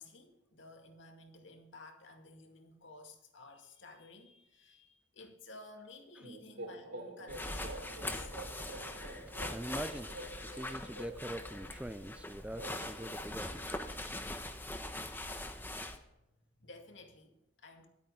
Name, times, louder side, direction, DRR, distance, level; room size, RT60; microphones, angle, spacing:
voice 1, 0.0-8.3 16.5-17.9, left 3 dB, 70° left, 4 dB, 2.2 m, -54 dB
sound 1, 6.2-13.9, right 2 dB, 65° right, 3.3 m, -48 dB
sound 2, 7.3-16.0, left 1 dB, 10° left, 1.1 m, -42 dB
voice 2, 9.3-10.1 10.5-13.8, right 1 dB, 5° right, 12 dB, 0.4 m, -43 dB
23.0 x 8.5 x 3.9 m, 0.89 s
head